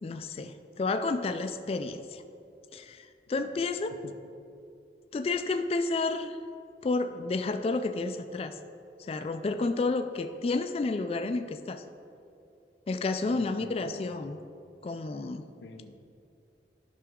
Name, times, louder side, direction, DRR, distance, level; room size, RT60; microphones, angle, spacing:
voice 1, 0.0-2.2 2.7-3.9 5.1-6.4 6.8-8.6 9.0-11.8 12.9-14.4 14.8-15.4, left 3 dB, 35° left, 8 dB, 0.3 m, -31 dB
voice 2, 13.3-14.3 15.6-16.1, left 3 dB, 85° left, 8 dB, 0.6 m, -46 dB
11.0 x 5.9 x 3.7 m, 2.6 s
head